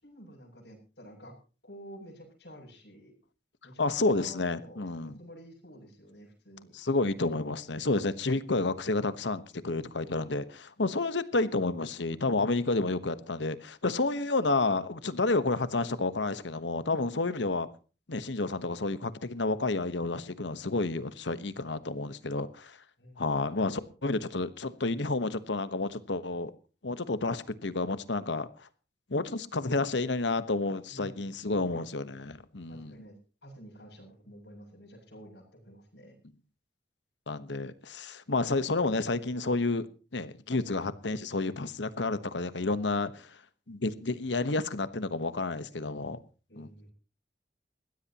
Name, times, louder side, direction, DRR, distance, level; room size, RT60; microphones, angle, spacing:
voice 1, 0.0-1.3 1.6-3.1 3.6-6.7 23.0-23.5 30.9-31.8 32.7-33.2 33.4-36.2 46.5-46.9, right 1 dB, 70° left, 7.2 m, -50 dB
voice 2, 3.8-5.2 6.7-17.7 18.1-22.8 23.2-26.5 26.8-28.7 29.1-33.0 37.3-39.9 40.1-43.4 43.7-46.2 46.6-46.7, left 3 dB, 85° left, 1.2 m, -30 dB
21.0 x 16.0 x 3.0 m
head